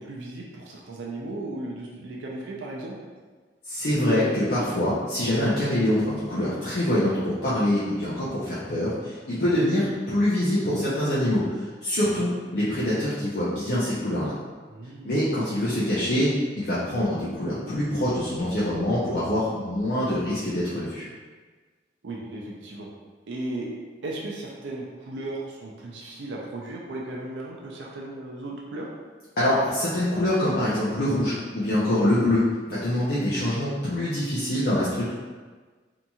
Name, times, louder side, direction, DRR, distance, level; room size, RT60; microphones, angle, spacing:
voice 1, 0.0-2.9 14.7-15.3 22.0-22.9 23.3-23.7 24.0-28.9, right 2 dB, 85° right, -3 dB, 0.4 m, -36 dB
voice 2, 3.7-14.3 15.0-16.3 16.6-21.1 29.4-35.1, left 1 dB, 55° left, -10 dB, 0.5 m, -25 dB
2.8 x 2.6 x 2.3 m, 1.4 s
head